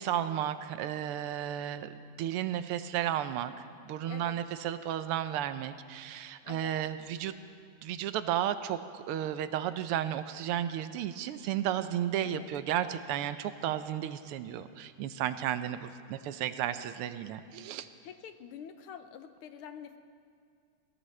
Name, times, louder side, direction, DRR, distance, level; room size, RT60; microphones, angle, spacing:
voice 1, 0.0-1.9 2.2-7.3 7.8-17.9, right 11 dB, 90° right, 11 dB, 1.6 m, -33 dB
voice 2, 4.1-4.4 6.4-6.7 12.2-12.5 18.0-20.0, left 8 dB, 90° left, 9 dB, 1.7 m, -46 dB
21.5 x 17.0 x 3.3 m, 2.3 s
omnidirectional pair, 2.4 m